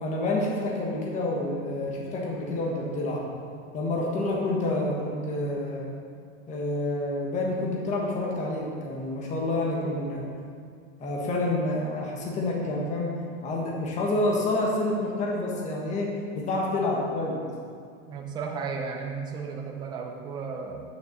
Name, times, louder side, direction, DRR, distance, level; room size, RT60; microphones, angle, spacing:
voice 1, 0.0-3.2 3.7-5.9 6.5-10.3 11.0-13.1 13.4-17.4, left 2 dB, 15° left, -2 dB, 1.3 m, -28 dB
voice 2, 18.0-20.8, right 5 dB, 10° right, 1 dB, 0.5 m, -34 dB
8.6 x 6.7 x 6.7 m, 2.3 s
supercardioid pair, 165°, 41 cm